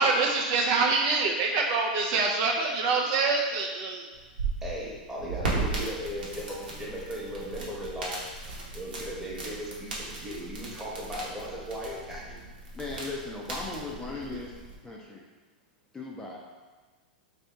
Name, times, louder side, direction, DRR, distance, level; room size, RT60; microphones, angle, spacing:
voice 1, 0.0-4.1 14.3-14.4, right 3 dB, 50° right, 0 dB, 0.4 m, -25 dB
sound 1, 4.1-14.8, right 3 dB, 85° right, 1.0 m, -37 dB
voice 2, 4.6-8.2 8.7-12.4, equal, 5° right, -5 dB, 1.0 m, -37 dB
voice 3, 12.7-15.2 15.9-16.4, left 3 dB, 10° left, -3 dB, 0.5 m, -38 dB
3.4 x 2.8 x 3.4 m, 1.3 s
hypercardioid pair, 110°, 5 cm